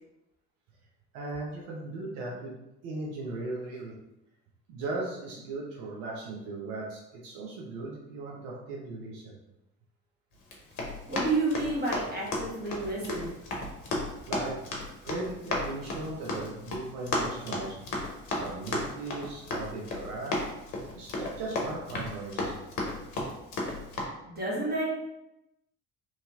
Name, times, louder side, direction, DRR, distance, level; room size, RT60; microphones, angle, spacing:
voice 1, 1.1-2.5 2.8-3.9 4.7-9.4 14.2-14.6 15.0-17.8 18.4-20.4 21.0-22.6, right 2 dB, 70° right, -3 dB, 0.7 m, -37 dB
Run, 10.4-24.0, left 2 dB, 70° left, 0.8 m, -35 dB
voice 2, 11.1-13.3 24.2-24.9, right 2 dB, 20° right, -5 dB, 1.3 m, -30 dB
3.0 x 2.7 x 2.4 m, 0.90 s
hypercardioid pair, 55°, 47 cm